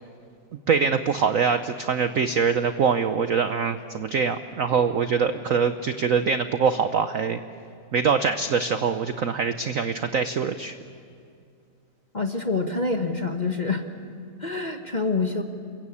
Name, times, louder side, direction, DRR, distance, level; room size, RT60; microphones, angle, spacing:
voice 1, 0.7-7.4 7.9-10.7, right 6 dB, 65° right, 10 dB, 0.8 m, -23 dB
voice 2, 12.1-13.8 14.4-15.4, left 3 dB, 25° left, 5 dB, 1.1 m, -26 dB
28.5 x 23.0 x 8.5 m, 2.4 s
omnidirectional pair, 2.3 m